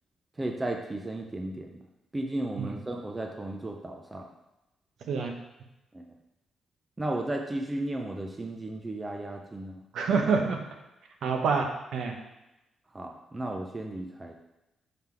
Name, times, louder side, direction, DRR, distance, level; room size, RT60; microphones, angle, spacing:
voice 1, 0.4-1.8 2.1-4.3 5.9-6.1 7.0-9.8 12.9-14.3, right 1 dB, 15° right, 2 dB, 0.4 m, -34 dB
voice 2, 9.9-10.6 11.2-12.1, right 5 dB, 70° right, 3 dB, 0.8 m, -27 dB
5.7 x 4.4 x 3.7 m, 0.95 s
wide cardioid pair, 180°, 0 cm